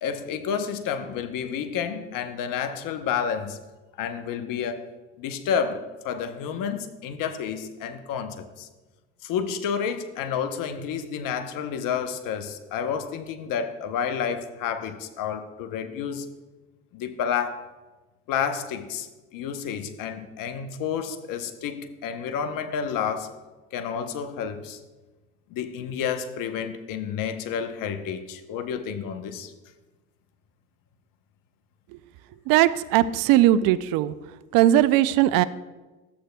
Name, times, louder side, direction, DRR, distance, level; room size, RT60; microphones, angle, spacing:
voice 1, 0.0-3.6 4.0-4.8 5.2-8.7 9.2-16.3 16.9-17.7 18.3-23.3 23.7-24.8 25.5-29.5, left 7 dB, 60° left, 9 dB, 0.9 m, -30 dB
voice 2, 32.5-34.1 34.5-35.4, right 13 dB, 65° right, 16 dB, 0.5 m, -19 dB
13.0 x 7.8 x 2.2 m, 1.2 s
hypercardioid pair, 70°, 37 cm